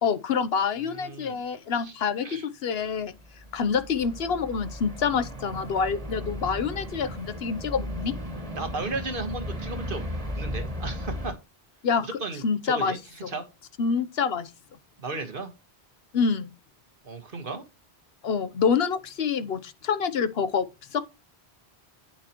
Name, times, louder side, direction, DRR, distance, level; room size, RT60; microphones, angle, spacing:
voice 1, 0.0-3.1 3.5-8.1 11.8-13.3 13.8-14.5 16.1-16.5 18.2-20.7 20.9-21.0, left 6 dB, 70° left, 1.0 m, -27 dB
voice 2, 0.8-1.4 1.8-1.9 2.2-2.4 8.6-10.0 10.3-11.3 12.0-13.0 13.3-13.4 15.0-15.5 17.0-17.6, right 3 dB, 55° right, 1.6 m, -34 dB
sound 1, 3.1-11.3, equal, 35° right, 2.0 m, -36 dB
8.7 x 7.3 x 3.0 m
omnidirectional pair, 1.1 m